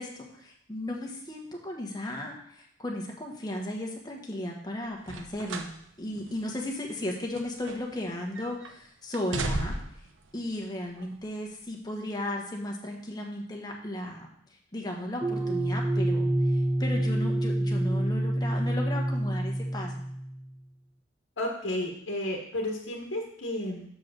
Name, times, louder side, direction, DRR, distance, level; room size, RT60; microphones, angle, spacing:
voice 1, 0.0-5.7 6.0-9.7 10.3-14.3 14.7-20.0, left 1 dB, 20° left, 0 dB, 1.1 m, -35 dB
sound 1, 5.0-5.8 6.2-6.3 7.0-8.1 8.4-8.7 9.1-10.1 10.9-11.1, right 2 dB, 80° right, 0.7 m, -34 dB
sound 2, 15.2-20.4, right 1 dB, 5° right, 0.3 m, -27 dB
voice 2, 21.4-23.8, left 1 dB, 75° left, 0 dB, 1.1 m, -32 dB
6.1 x 4.7 x 6.4 m, 0.70 s
head